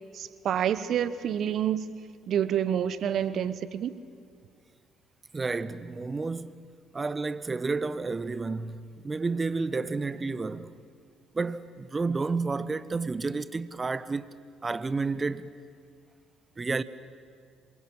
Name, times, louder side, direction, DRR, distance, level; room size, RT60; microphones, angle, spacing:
voice 1, 0.1-1.9 2.3-3.9, right 9 dB, 55° right, 1.1 m, -28 dB
voice 2, 5.3-6.6 6.9-10.7 11.3-14.3 14.6-15.5 16.6-16.8, right 3 dB, 30° right, 1.1 m, -31 dB
27.0 x 24.5 x 8.9 m
hypercardioid pair, 55°, 0 cm